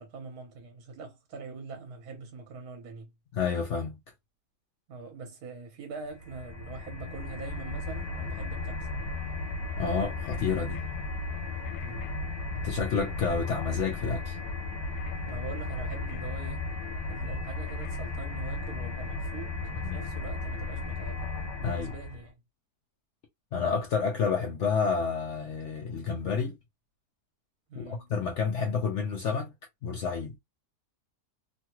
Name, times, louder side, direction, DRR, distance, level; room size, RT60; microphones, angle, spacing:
voice 1, 0.0-3.1 4.9-8.9 11.8-12.1 15.3-16.7 17.0-21.3 21.6-22.3 27.7-28.1, right 4 dB, 65° right, 1.4 m, -43 dB
voice 2, 3.3-4.0 9.8-10.8 12.6-14.4 19.8-20.0 21.6-21.9 23.5-26.6 27.8-29.5 29.8-30.4, left 5 dB, 65° left, 0.7 m, -29 dB
sound 1, 6.1-22.3, left 3 dB, 85° left, 1.2 m, -35 dB
3.1 x 2.2 x 2.9 m
omnidirectional pair, 1.8 m